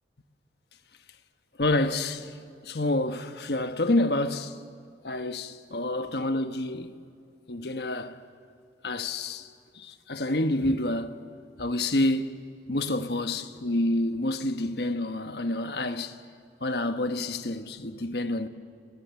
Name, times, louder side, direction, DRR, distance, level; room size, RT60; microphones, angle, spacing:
voice 1, 1.6-4.6 5.0-6.9 7.5-8.2 8.8-9.5 9.7-11.2 11.6-12.3 12.7-16.2 16.6-18.5, left 1 dB, 65° left, 1.3 m, -28 dB
29.5 x 21.0 x 7.1 m
head